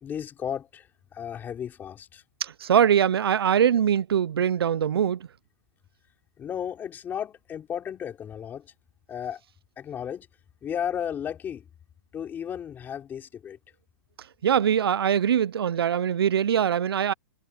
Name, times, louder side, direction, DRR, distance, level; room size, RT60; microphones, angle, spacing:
voice 1, 0.0-2.2 6.4-8.7 9.1-9.4 9.8-10.3 10.6-11.7 12.1-13.6, left 9 dB, 15° left, 3.8 m, -34 dB
voice 2, 2.4-5.3 14.4-17.1, right 9 dB, 85° right, 0.6 m, -22 dB
hypercardioid pair, 155°, 12 cm